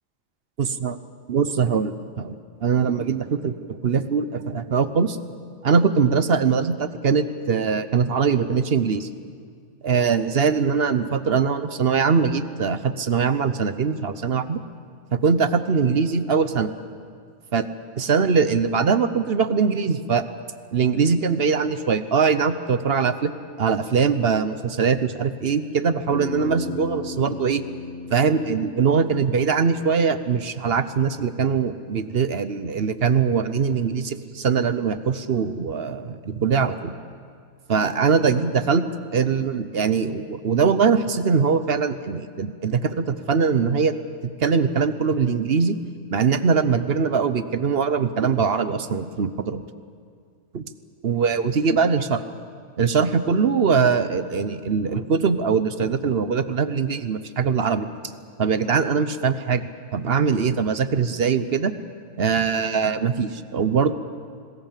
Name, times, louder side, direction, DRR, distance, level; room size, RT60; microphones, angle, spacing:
voice 1, 0.6-0.9 1.3-2.3 2.6-3.5 3.8-5.2 5.6-9.1 9.8-14.6 15.1-16.7 17.5-17.6 18.0-20.2 20.7-23.3 23.6-27.6 28.1-36.9 37.7-43.9 44.2-45.8 46.1-49.6 50.5-50.7 51.0-52.2 52.8-57.9 58.4-61.7 62.2-63.9, right 5 dB, 50° right, 12 dB, 1.0 m, -22 dB
Bass guitar, 26.1-30.4, left 3 dB, 85° left, 2.4 m, -36 dB
26.0 x 20.5 x 7.5 m, 2.1 s
omnidirectional pair, 1.4 m